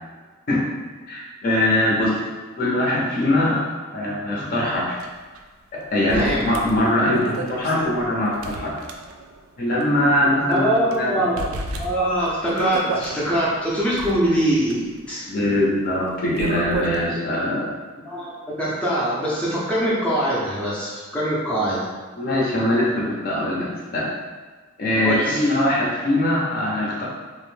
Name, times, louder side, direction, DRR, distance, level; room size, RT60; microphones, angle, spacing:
voice 1, 1.1-2.2 2.6-5.1 5.7-8.7 9.6-11.2 15.3-17.7 22.2-24.1 24.8-27.0, left 1 dB, 45° left, -5 dB, 0.6 m, -22 dB
sound 1, 5.0-5.1 5.3-5.4 6.1-9.5 9.8-9.9 10.5-11.0 11.4-13.2 13.8-17.1, right 2 dB, 85° right, 0.3 m, -33 dB
voice 2, 6.0-6.4 10.5-15.3 18.1-18.3 18.6-21.9 25.0-25.5, right 1 dB, 5° left, -8 dB, 0.5 m, -23 dB
2.5 x 2.1 x 3.1 m, 1.4 s
head